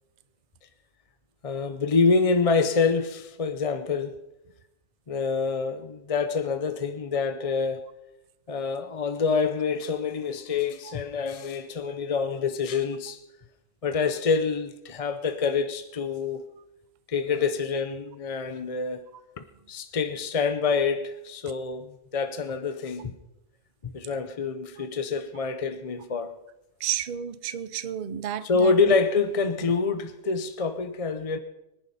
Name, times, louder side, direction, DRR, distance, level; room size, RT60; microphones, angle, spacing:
voice 1, 1.4-4.2 5.1-7.8 8.5-13.2 13.8-16.4 17.1-19.1 19.4-23.1 23.9-26.4 28.4-31.4, left 4 dB, 40° left, 0.5 m, -26 dB
voice 2, 26.8-28.9, right 10 dB, 45° right, 0.6 m, -32 dB
24.0 x 10.5 x 4.2 m
omnidirectional pair, 1.4 m